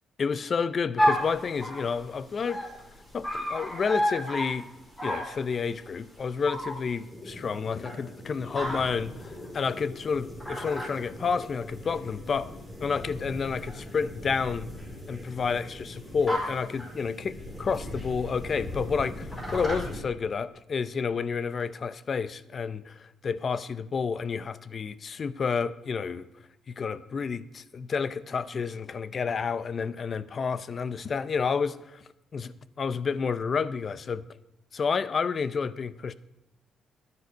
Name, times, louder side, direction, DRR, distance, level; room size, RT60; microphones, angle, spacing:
voice 1, 0.2-2.6 3.1-4.7 5.0-14.7 15.1-26.3 26.7-32.0 32.3-34.2 34.7-36.1, left 5 dB, 45° left, 16 dB, 0.6 m, -30 dB
sound 1, 1.0-20.0, equal, 20° left, 4.6 m, -34 dB
12.5 x 9.9 x 5.2 m, 0.87 s
cardioid pair, 90°, 0 cm